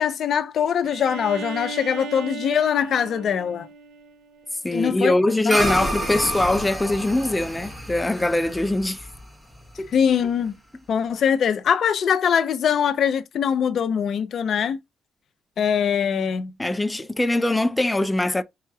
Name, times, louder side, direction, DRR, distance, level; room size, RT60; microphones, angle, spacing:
voice 1, 0.0-3.7 4.7-5.1 5.4-5.6 9.9-10.6 10.9-14.8 15.6-16.5, left 8 dB, 60° left, 0.7 m, -22 dB
Bowed string instrument, 0.8-4.6, right 4 dB, 75° right, 0.6 m, -36 dB
voice 2, 4.6-9.0 9.8-9.9 16.6-18.4, left 2 dB, 10° left, 0.4 m, -22 dB
sound 1, 5.5-10.1, equal, 10° right, 1.3 m, -29 dB
5.6 x 2.9 x 2.3 m
cardioid pair, 90°, 0 cm